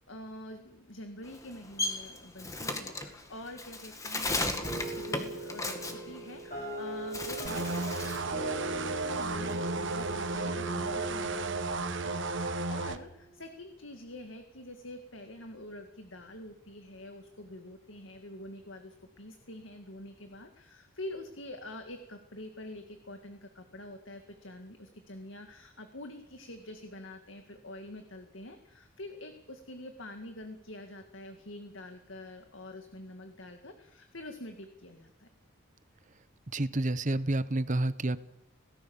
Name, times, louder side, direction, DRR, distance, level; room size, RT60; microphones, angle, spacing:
voice 1, 0.1-35.3, left 1 dB, 60° left, 6 dB, 2.1 m, -46 dB
Bird, 1.2-6.7 7.0-8.3 8.7-10.4, left 2 dB, 15° left, 2.1 m, -36 dB
sound 1, 4.6-13.2, right 2 dB, 35° left, 7.1 m, -41 dB
sound 2, 7.4-13.0, right 3 dB, 55° right, 1.3 m, -33 dB
voice 2, 36.5-38.2, right 2 dB, 35° right, 15 dB, 0.9 m, -29 dB
26.0 x 18.0 x 7.2 m, 0.87 s
head